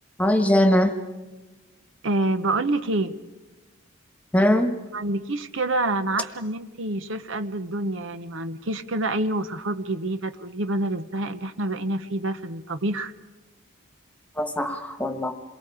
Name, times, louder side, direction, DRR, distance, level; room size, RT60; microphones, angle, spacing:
voice 1, 0.2-0.9 4.3-4.7 14.4-15.3, left 1 dB, 5° left, 7 dB, 1.5 m, -21 dB
voice 2, 2.0-3.1 4.9-13.1, right 2 dB, 60° right, 11 dB, 0.9 m, -27 dB
28.0 x 23.0 x 5.0 m, 1.2 s
head